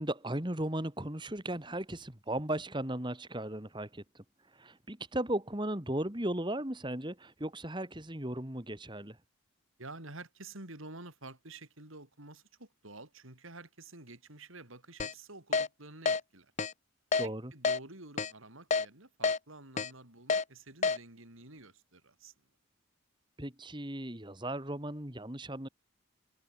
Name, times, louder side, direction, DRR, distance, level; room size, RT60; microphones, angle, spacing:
voice 1, 0.0-4.0 4.5-9.2 17.2-17.5 23.4-25.7, right 1 dB, 20° right, 2.2 m, -36 dB
voice 2, 9.8-16.5 17.2-22.3, right 2 dB, 75° right, 4.8 m, -50 dB
Keyboard (musical), 15.0-15.1 15.5-15.7 16.1-16.2 16.6-16.7 17.1-17.3 17.6-17.8 18.2-18.3 18.7-18.8 19.2-19.4 19.8-19.9 20.3-20.4 20.8-21.0, left 4 dB, 35° left, 0.7 m, -28 dB
head